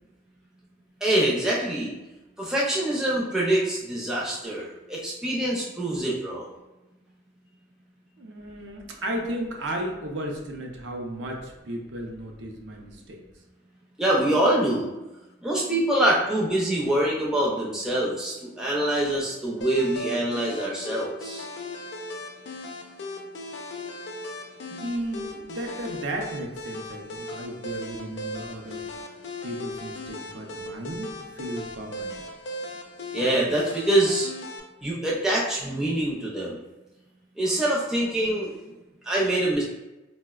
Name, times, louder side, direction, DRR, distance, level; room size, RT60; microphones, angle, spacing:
voice 1, 1.0-1.9 2.4-6.5 14.0-14.9 15.4-21.5 33.1-34.3 34.8-36.6 37.4-38.5 39.0-39.6, right 1 dB, 5° right, -5 dB, 0.4 m, -25 dB
voice 2, 8.2-13.2 24.7-28.8 29.4-32.2, right 1 dB, 65° right, 1 dB, 0.5 m, -34 dB
sound 1, 19.6-34.6, left 1 dB, 60° left, 0.4 m, -37 dB
4.0 x 2.0 x 2.3 m, 1.1 s
head